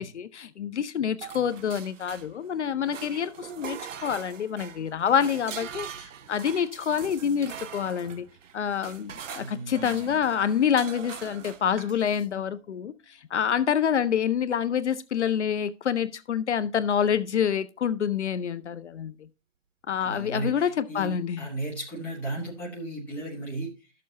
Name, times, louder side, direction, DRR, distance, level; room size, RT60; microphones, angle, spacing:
voice 1, 0.0-8.3 8.5-19.3 19.9-21.5, left 8 dB, 65° left, 0.6 m, -27 dB
sound 1, 1.2-2.5 2.9-12.3, right 8 dB, 90° right, 0.7 m, -42 dB
voice 2, 9.3-10.2 20.0-23.9, right 2 dB, 5° left, 1.1 m, -36 dB
12.0 x 6.7 x 2.8 m
hypercardioid pair, 165°, 37 cm